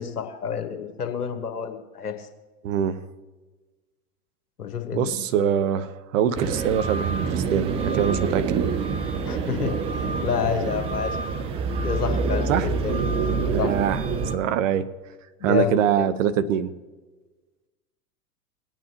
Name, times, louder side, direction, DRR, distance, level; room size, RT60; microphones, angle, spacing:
voice 1, 0.0-2.3 4.6-5.2 9.2-9.7 10.0-11.2 11.8-12.5 12.8-13.0 13.6-13.7 15.4-16.1, left 7 dB, 75° left, 6 dB, 1.5 m, -29 dB
voice 2, 2.6-3.0 4.9-8.7 12.5-12.7 13.5-14.0 14.3-14.9 15.4-16.7, right 9 dB, 55° right, 12 dB, 0.9 m, -24 dB
sound 1, 6.3-14.3, right 4 dB, 15° right, 0.4 m, -26 dB
19.0 x 9.1 x 2.9 m, 1.3 s
figure-of-eight pair, 95°, 46 cm